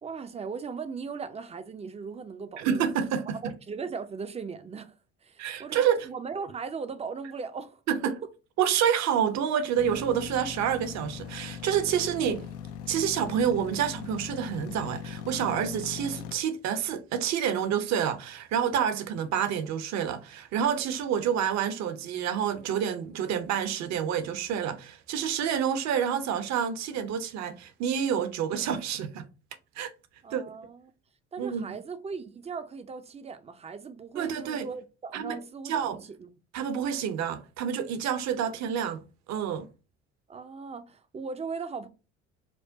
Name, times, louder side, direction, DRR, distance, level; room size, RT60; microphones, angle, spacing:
voice 1, 0.0-2.8 3.4-4.9 5.2-8.1 30.2-30.9 31.3-36.3 40.3-41.9, right 5 dB, 20° right, 0.5 m, -38 dB
voice 2, 2.6-3.5 5.4-6.1 7.9-8.1 8.6-12.5 12.9-29.3 29.8-29.9 30.3-30.4 31.4-31.8 34.1-34.7 35.1-35.4 35.6-36.0 36.5-39.0 39.3-39.7, right 8 dB, 50° right, 0.7 m, -28 dB
sound 1, 9.8-16.3, left 7 dB, 70° left, 0.5 m, -40 dB
4.6 x 2.1 x 2.7 m
hypercardioid pair, 60°, 35 cm